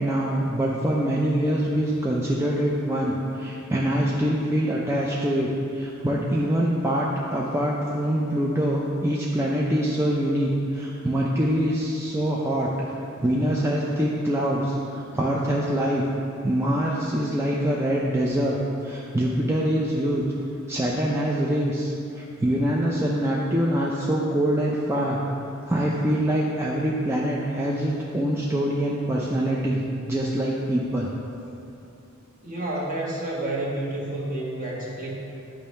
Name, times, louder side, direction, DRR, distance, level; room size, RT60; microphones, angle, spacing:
voice 1, 0.0-12.7 13.2-16.0 16.4-18.6 18.8-20.2 20.7-31.1, right 1 dB, 10° right, -4 dB, 0.4 m, -24 dB
voice 2, 32.4-35.1, right 1 dB, 40° right, -3 dB, 1.2 m, -29 dB
8.6 x 3.1 x 5.5 m, 2.7 s
head